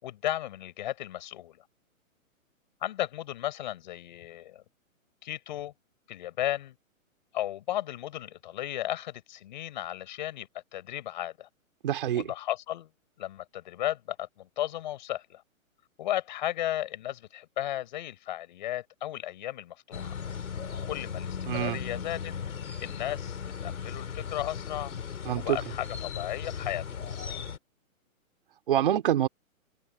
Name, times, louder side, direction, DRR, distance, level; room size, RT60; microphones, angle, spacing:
voice 1, 0.0-1.6 2.8-4.6 5.2-5.7 6.1-6.7 7.3-11.5 12.1-12.9 13.2-15.4 16.0-20.1 20.8-22.3 22.8-24.9 25.3-26.8, left 13 dB, 35° left, 6.6 m, -35 dB
voice 2, 11.8-12.3 21.5-21.8 25.3-25.6 28.7-29.3, right 11 dB, 40° right, 3.5 m, -26 dB
sound 1, 19.9-27.6, left 7 dB, 80° left, 5.3 m, -37 dB
hypercardioid pair, 175°, 42 cm